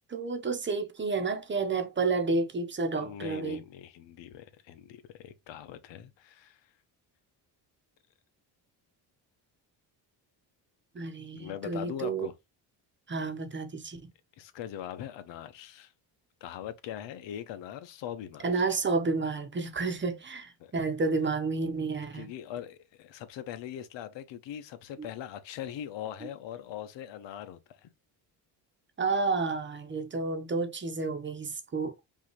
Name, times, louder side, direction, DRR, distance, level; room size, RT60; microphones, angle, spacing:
voice 1, 0.1-3.6 10.9-12.3 13.1-14.0 18.4-22.3 25.0-25.1 29.0-31.9, right 4 dB, 25° right, 1.1 m, -30 dB
voice 2, 3.0-6.6 11.3-12.3 14.4-15.9 16.4-18.6 20.6-20.7 22.1-27.9, left 10 dB, 80° left, 1.0 m, -41 dB
5.4 x 2.8 x 3.1 m
cardioid pair, 115°, 43 cm